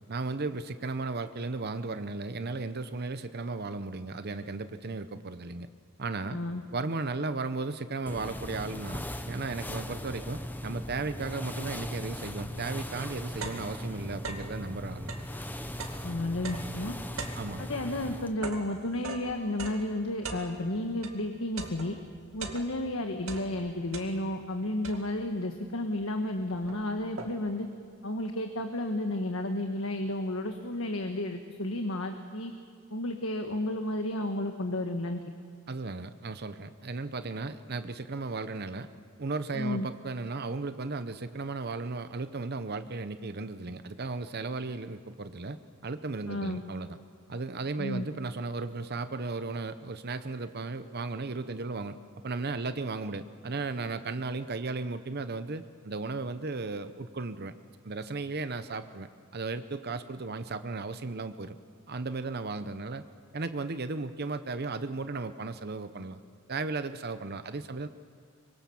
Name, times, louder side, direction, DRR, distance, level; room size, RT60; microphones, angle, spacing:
voice 1, 0.1-5.7 6.0-6.4 6.7-15.3 17.4-17.7 35.7-38.9 39.2-45.6 45.8-47.0 47.3-52.0 52.2-57.5 57.8-59.1 59.3-61.5 61.9-63.0 63.3-66.2 66.5-67.9, right 3 dB, 50° right, 11 dB, 0.8 m, -35 dB
voice 2, 6.3-6.6 16.0-16.9 17.6-22.0 22.3-27.7 28.0-32.5 32.9-35.2 39.5-39.9 46.3-46.6 47.8-48.1, left 1 dB, 80° left, 5 dB, 1.5 m, -32 dB
sound 1, 8.1-18.4, equal, 10° left, 1.0 m, -39 dB
sound 2, 13.4-14.6 15.0-21.2 21.6-22.9 23.2-24.5 24.8-25.4 26.0-26.1 26.4-27.6, right 4 dB, 90° right, 2.4 m, -42 dB
25.0 x 23.0 x 7.2 m, 2.3 s
head